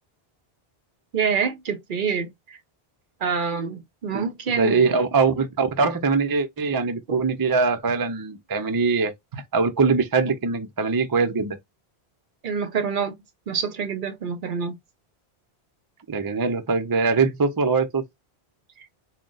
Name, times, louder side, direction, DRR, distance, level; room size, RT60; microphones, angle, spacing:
voice 1, 1.1-2.6 3.2-5.0 7.1-7.2 12.4-13.2 13.5-14.8 18.8-18.9, right 6 dB, 55° right, 0.7 m, -27 dB
voice 2, 4.6-9.1 9.5-11.6 16.1-18.0, right 4 dB, 30° right, 0.4 m, -22 dB
3.7 x 2.2 x 3.8 m
omnidirectional pair, 1.1 m